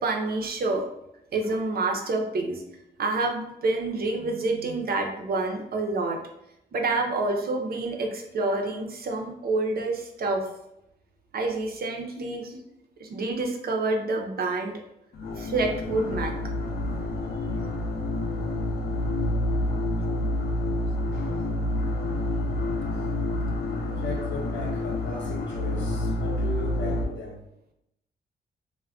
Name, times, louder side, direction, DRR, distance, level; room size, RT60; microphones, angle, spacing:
voice 1, 0.0-0.8 1.3-2.6 3.0-6.2 6.7-10.4 11.3-12.6 13.0-14.8 15.4-16.3, right 3 dB, 60° right, 2 dB, 0.5 m, -28 dB
sound 1, 15.1-27.0, left 1 dB, 60° left, 0.4 m, -28 dB
voice 2, 21.1-21.7 24.0-27.4, left 1 dB, 90° left, -1 dB, 0.7 m, -38 dB
2.2 x 2.1 x 3.5 m, 0.82 s
cardioid pair, 110°, 18 cm